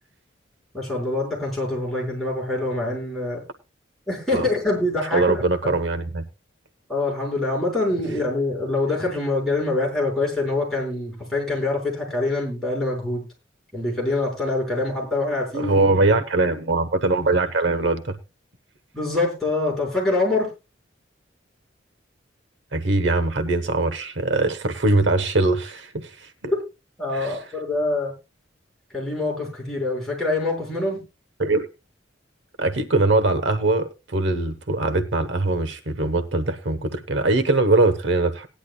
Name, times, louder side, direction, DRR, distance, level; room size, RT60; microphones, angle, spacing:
voice 1, 0.7-3.4 4.1-5.7 6.9-13.2 13.7-15.9 18.9-20.5 27.0-28.1 28.9-31.0, left 2 dB, ahead, 5.5 m, -25 dB
voice 2, 5.1-6.2 15.5-18.2 22.7-26.5 27.1-27.4 31.4-31.7 32.6-38.5, right 2 dB, 70° right, 1.0 m, -22 dB
18.5 x 10.5 x 2.3 m
head